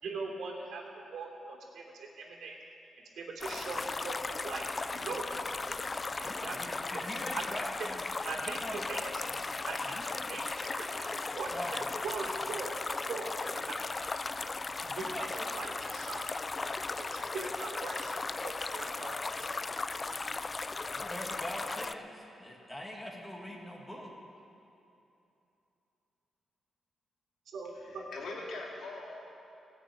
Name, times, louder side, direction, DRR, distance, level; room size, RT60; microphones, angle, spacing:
voice 1, 0.0-2.6 3.2-5.8 6.2-6.6 7.3-7.4 7.8-7.9 8.2-9.1 9.7-10.0 10.3-13.8 14.0-14.3 14.9-16.4 17.0-18.1 18.4-19.5 27.5-28.0, right 3 dB, 80° right, -1 dB, 3.1 m, -41 dB
sound 1, 3.4-21.9, left 3 dB, 30° left, 0.4 m, -37 dB
voice 2, 6.2-8.0 8.4-8.8 9.8-10.3 11.5-12.3 14.8-15.5 20.9-24.1, equal, 10° left, -1 dB, 2.5 m, -43 dB
voice 3, 27.7-29.3, left 2 dB, 75° left, -2 dB, 2.7 m, -42 dB
17.5 x 7.2 x 8.8 m, 2.8 s
cardioid pair, 95°, 0 cm